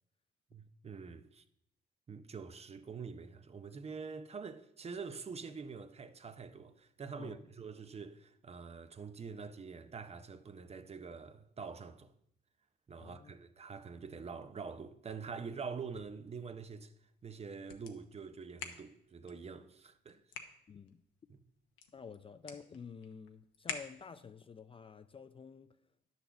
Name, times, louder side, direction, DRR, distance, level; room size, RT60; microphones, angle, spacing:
voice 1, 0.5-1.4 2.1-12.1 12.9-16.9 17.2-20.2 21.3-21.4, right 5 dB, 30° right, 0.6 m, -45 dB
voice 2, 13.0-13.3 20.7-21.0 21.9-25.8, left 5 dB, 25° left, 0.4 m, -50 dB
sound 1, 15.7-24.4, left 7 dB, 90° left, 0.9 m, -51 dB
9.8 x 4.1 x 6.8 m
cardioid pair, 90°, 20 cm